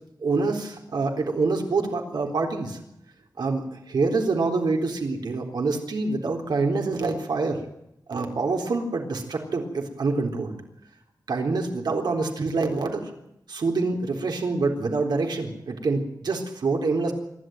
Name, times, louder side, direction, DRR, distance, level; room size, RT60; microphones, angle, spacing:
voice 1, 0.2-2.8 3.4-7.6 8.1-10.5 11.3-13.1 13.5-17.1, right 3 dB, 85° right, 2 dB, 3.9 m, -26 dB
26.0 x 12.0 x 9.2 m, 0.80 s
wide cardioid pair, 120°, 7 cm